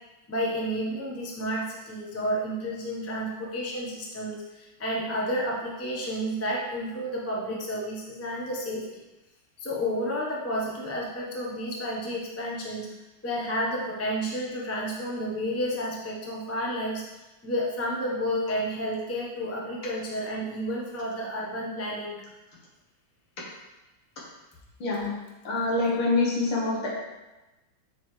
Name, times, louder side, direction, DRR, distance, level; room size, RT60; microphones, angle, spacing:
voice 1, 0.3-9.0 9.6-12.9 13.2-17.0 17.4-22.2, equal, 25° left, -3 dB, 0.3 m, -31 dB
voice 2, 24.8-25.2 25.4-26.9, left 3 dB, 75° left, -4 dB, 2.3 m, -25 dB
6.9 x 5.3 x 3.2 m, 1.1 s
omnidirectional pair, 2.4 m